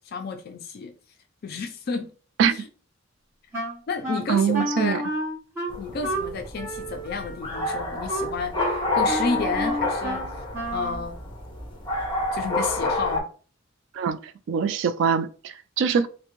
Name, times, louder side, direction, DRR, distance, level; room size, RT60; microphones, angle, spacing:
voice 1, 0.1-0.9 1.4-2.1 2.4-2.6 3.9-5.0 5.8-10.3 10.7-11.2 12.3-13.2, left 4 dB, 50° left, 0.3 m, -31 dB
Wind instrument woodwind instrument, 3.5-11.1, right 1 dB, 15° right, 1.0 m, -31 dB
voice 2, 4.3-5.0 13.9-16.1, right 7 dB, 70° right, 0.3 m, -23 dB
sound 1, 5.7-13.2, left 2 dB, 25° left, 0.7 m, -29 dB
3.3 x 2.0 x 2.9 m
head